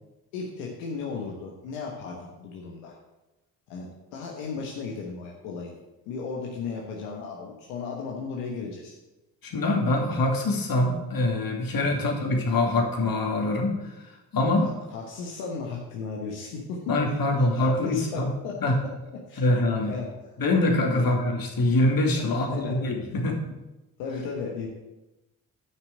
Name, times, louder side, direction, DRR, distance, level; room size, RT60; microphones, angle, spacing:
voice 1, 0.3-3.0 3.7-5.7 6.1-8.9 11.8-12.1 14.6-17.0 17.5-18.9 19.3-19.4 19.9-20.1 20.9-21.1 22.1-22.8 24.0-24.7, left 5 dB, 85° left, -1 dB, 1.4 m, -35 dB
voice 2, 9.4-14.0 14.3-14.7 16.9-18.3 18.6-18.8 19.4-19.9 20.4-23.4, left 2 dB, 55° left, 1 dB, 2.6 m, -24 dB
8.1 x 6.0 x 8.0 m, 1.0 s
hypercardioid pair, 45°, 43 cm